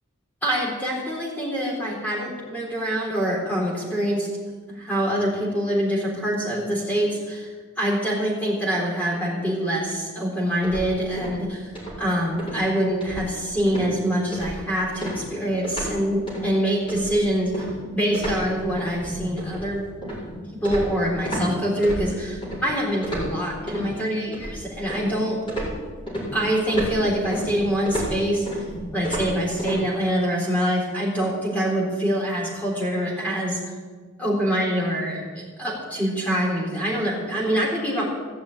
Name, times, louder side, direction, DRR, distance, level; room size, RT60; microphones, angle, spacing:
voice 1, 0.4-4.3 4.7-11.7 12.0-17.7 17.9-19.8 20.6-25.4 26.3-28.5 28.9-33.6 34.2-38.0, equal, 5° left, -3 dB, 4.0 m, -25 dB
sound 1, 10.6-11.5 11.7-12.1 12.4-12.6 13.0-13.4 13.7-13.9 14.3-14.7 15.0-16.0 16.3-16.5 16.9-21.5 21.8-22.6 23.0-23.9 24.3-25.2 25.5-29.8, right 1 dB, 25° left, 5.3 m, -32 dB
16.5 x 7.0 x 9.1 m, 1.4 s
head